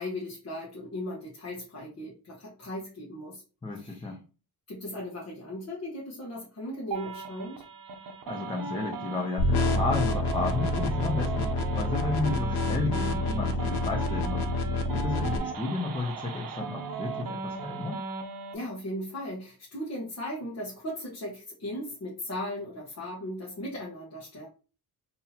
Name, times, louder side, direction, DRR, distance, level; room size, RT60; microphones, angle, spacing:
voice 1, 0.0-3.4 3.8-4.1 4.7-7.6 18.5-24.5, left 1 dB, 40° left, -4 dB, 0.9 m, -37 dB
voice 2, 3.6-4.2 8.0-14.5 14.9-18.0, left 3 dB, 15° left, 0 dB, 0.4 m, -33 dB
sound 1, 6.9-18.5, right 5 dB, 60° right, 0.7 m, -37 dB
sound 2, 9.4-15.4, left 2 dB, 85° left, 0.6 m, -28 dB
2.7 x 2.7 x 3.9 m, 0.35 s
wide cardioid pair, 160°, 39 cm